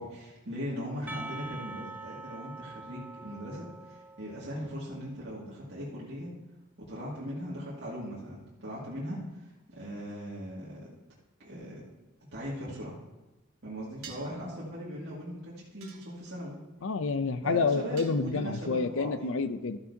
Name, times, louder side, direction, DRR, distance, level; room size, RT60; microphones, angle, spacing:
voice 1, 0.0-6.3 6.8-10.9 11.4-11.8 12.3-13.0 13.6-16.6 17.4-19.4, equal, 55° right, -7 dB, 2.2 m, -39 dB
Percussion, 1.1-5.0, right 2 dB, 10° right, 0.4 m, -44 dB
sound 1, 14.0-14.4 15.8-16.5 18.0-18.7, right 6 dB, 75° right, 1.6 m, -49 dB
voice 2, 16.8-19.8, left 4 dB, 65° left, 12 dB, 0.5 m, -29 dB
13.0 x 9.5 x 2.8 m, 1.1 s
head